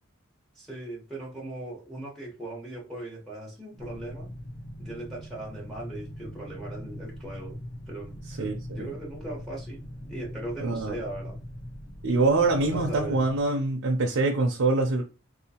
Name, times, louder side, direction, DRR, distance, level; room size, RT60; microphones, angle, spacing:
voice 1, 0.5-4.3 4.8-7.6 7.9-8.4 8.7-11.4 12.6-13.2, right 1 dB, ahead, 1.0 m, -39 dB
sound 1, 3.8-13.4, equal, 55° left, 1.0 m, -41 dB
voice 2, 8.4-8.9 10.6-10.9 12.0-15.0, right 3 dB, 80° right, 0.5 m, -24 dB
3.6 x 2.7 x 2.8 m
head